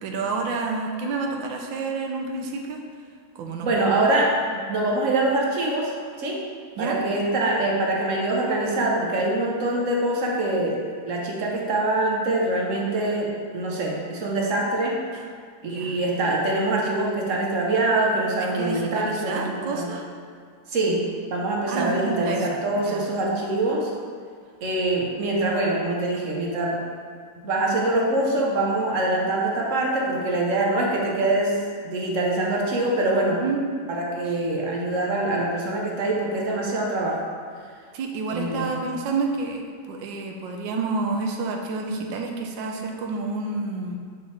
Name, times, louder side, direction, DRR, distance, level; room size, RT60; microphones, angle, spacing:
voice 1, 0.0-2.8 3.3-3.9 6.8-7.0 15.1-15.2 15.6-16.0 18.4-20.1 21.7-23.0 33.4-33.6 34.3-34.4 37.9-39.6 39.9-44.0, right 3 dB, 80° right, 2 dB, 1.4 m, -29 dB
voice 2, 3.6-4.4 4.7-5.9 6.2-6.4 6.8-15.0 15.6-19.9 20.7-21.0 21.3-23.9 24.6-26.8 27.4-31.6 31.8-33.4 33.9-37.2 38.3-38.8, right 2 dB, 55° right, -2 dB, 1.0 m, -24 dB
8.3 x 4.3 x 3.4 m, 2.1 s
omnidirectional pair, 2.1 m